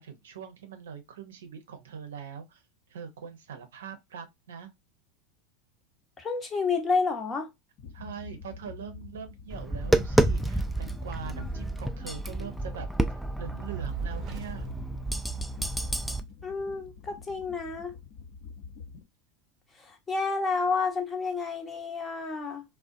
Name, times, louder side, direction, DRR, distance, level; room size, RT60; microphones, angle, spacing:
voice 1, 0.0-2.6 2.9-4.7 7.9-12.9 13.4-14.7, right 7 dB, 85° right, 0.5 m, -42 dB
voice 2, 6.2-7.5 16.4-18.0 19.8-22.6, left 4 dB, 25° left, 0.8 m, -30 dB
sound 1, 7.8-19.0, left 5 dB, 60° left, 0.7 m, -47 dB
Tap, 9.5-16.2, right 1 dB, ahead, 0.3 m, -29 dB
Fire, 13.6-16.0, right 6 dB, 40° right, 0.6 m, -39 dB
2.4 x 2.1 x 2.4 m
hypercardioid pair, 100°, 0 cm